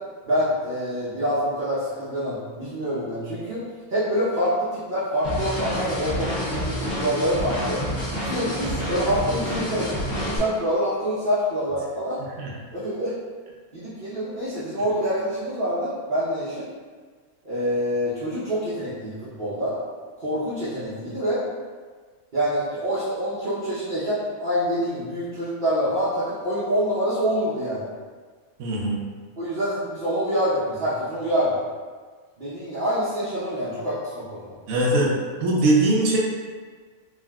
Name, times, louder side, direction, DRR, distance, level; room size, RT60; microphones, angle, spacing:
voice 1, 0.2-3.6 3.9-7.8 8.2-12.2 12.7-13.1 13.7-16.7 17.4-19.8 20.2-21.4 22.3-27.9 29.4-31.5 32.4-34.5, equal, 45° right, -12 dB, 0.8 m, -26 dB
sound 1, 5.2-10.4, equal, 60° left, 1.1 m, -28 dB
voice 2, 28.6-29.0 34.7-35.1 35.4-36.2, right 2 dB, 75° right, -3 dB, 1.0 m, -21 dB
3.5 x 2.4 x 2.2 m, 1.5 s
omnidirectional pair, 1.5 m